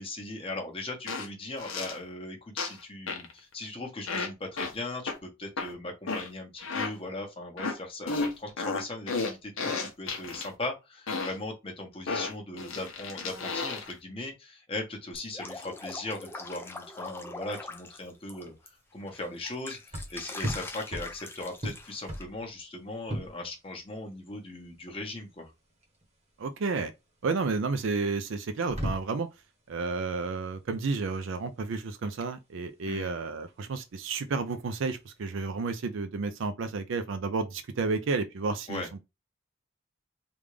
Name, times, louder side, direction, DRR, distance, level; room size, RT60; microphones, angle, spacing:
voice 1, 0.0-25.5 32.8-33.1 38.7-38.9, left 2 dB, 25° left, 1.0 m, -39 dB
Fart Combo Slow - Dry, 1.1-1.3 1.6-2.0 2.6-2.8 3.1-3.3 4.1-4.3 4.6-4.7 5.1-5.2 5.6-5.7 6.1-6.3 6.6-6.9 7.6-7.8 8.1-10.5 11.1-11.4 12.1-13.9, left 4 dB, 75° left, 0.8 m, -32 dB
Drip, 15.1-18.7 19.1-22.2, left 2 dB, 10° left, 0.4 m, -42 dB
sound 1, 17.3-35.2, equal, 30° right, 1.0 m, -41 dB
voice 2, 26.4-26.9 27.2-29.3 29.7-38.8, right 4 dB, 65° right, 0.4 m, -31 dB
3.5 x 2.4 x 3.2 m
head